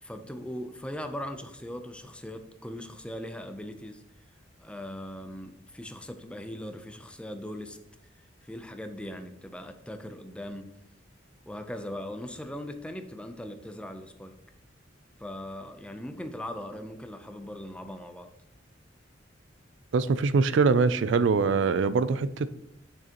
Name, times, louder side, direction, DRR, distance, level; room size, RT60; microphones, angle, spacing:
voice 1, 0.0-4.0 4.6-7.8 8.4-10.7 11.4-14.4 15.2-18.3, left 1 dB, 5° left, 7 dB, 0.6 m, -39 dB
voice 2, 19.9-22.5, right 4 dB, 75° right, 15 dB, 0.4 m, -23 dB
8.8 x 6.6 x 3.0 m, 0.80 s
head